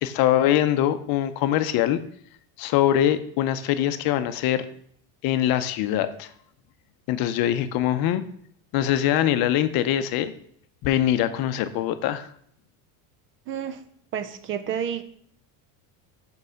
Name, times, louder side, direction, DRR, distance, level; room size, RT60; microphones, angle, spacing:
voice 1, 0.0-2.0 2.6-4.7 5.2-6.3 7.1-8.2 8.7-10.3 10.8-12.3, left 11 dB, 50° left, 11 dB, 0.7 m, -23 dB
voice 2, 13.5-13.8 14.1-15.0, right 8 dB, 30° right, 11 dB, 0.4 m, -30 dB
5.4 x 4.8 x 6.3 m, 0.64 s
cardioid pair, 150°, 46 cm